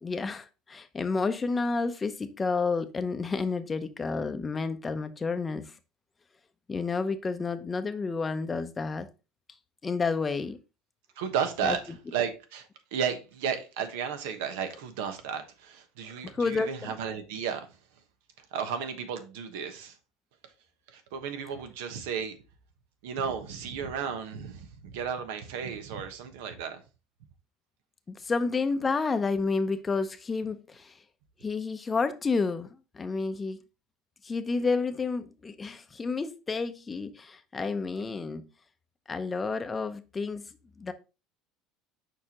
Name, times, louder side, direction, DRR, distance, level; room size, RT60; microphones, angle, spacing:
voice 1, 0.0-5.7 6.7-9.1 9.8-10.6 11.6-11.8 16.3-16.9 28.1-30.9 31.4-32.7 32.9-33.6 34.2-38.5 39.1-40.4 40.8-40.9, left 4 dB, 20° left, 0.7 m, -30 dB
voice 2, 11.2-17.7 18.4-20.0 20.9-22.4 23.0-26.8, right 7 dB, 85° right, 1.1 m, -33 dB
6.5 x 4.9 x 2.9 m
supercardioid pair, 125°, 0 cm